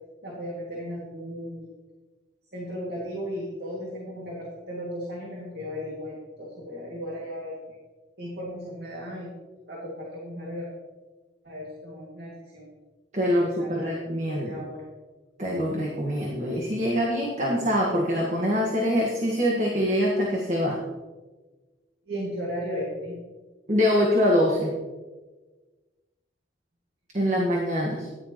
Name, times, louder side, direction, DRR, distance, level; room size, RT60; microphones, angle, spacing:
voice 1, 0.2-1.7 2.5-7.8 8.2-9.3 9.7-10.7 11.4-12.7 13.2-13.9 14.3-14.8 22.1-23.2, equal, 55° right, -4 dB, 2.3 m, -35 dB
voice 2, 13.1-14.5 15.4-20.8 23.7-24.7 27.1-28.1, equal, 40° right, -2 dB, 1.6 m, -24 dB
14.5 x 10.5 x 3.1 m, 1.3 s
head